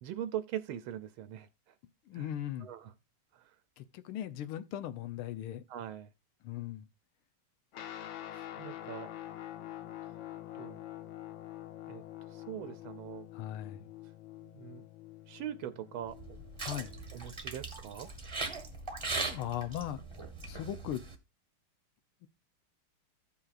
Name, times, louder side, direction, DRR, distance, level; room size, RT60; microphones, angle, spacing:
voice 1, 0.0-1.7 2.1-2.3 2.6-2.9 3.3-3.5 5.7-6.1 8.3-9.1 10.5-10.8 11.9-12.0 12.3-13.3 14.4-14.8 15.3-16.1 17.1-18.1, right 11 dB, 80° right, 1.4 m, -42 dB
voice 2, 2.1-2.7 3.8-5.6 6.4-6.9 13.3-13.9 16.6-17.0 19.3-20.0 20.4-21.0 22.2-22.3, left 11 dB, 85° left, 1.6 m, -38 dB
Guitar, 7.7-17.4, left 13 dB, 70° left, 1.5 m, -46 dB
sound 1, 16.1-21.1, right 3 dB, 15° right, 1.1 m, -40 dB
16.0 x 5.6 x 2.5 m
omnidirectional pair, 2.3 m